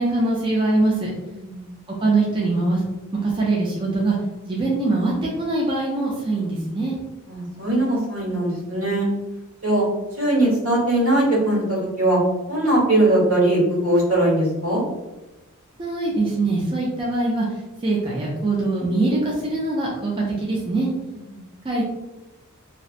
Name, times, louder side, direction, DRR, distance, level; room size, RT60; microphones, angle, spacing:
voice 1, 0.0-1.1 2.0-2.8 3.2-4.2 4.5-7.0 15.8-17.5 17.8-20.9 21.6-21.8, right 2 dB, 25° right, -4 dB, 0.4 m, -22 dB
voice 2, 1.3-1.7 7.3-9.1 9.6-9.9 10.2-12.2 12.5-14.8 21.1-21.3, right 1 dB, 75° right, -7 dB, 1.4 m, -20 dB
2.7 x 2.0 x 2.4 m, 1.0 s
head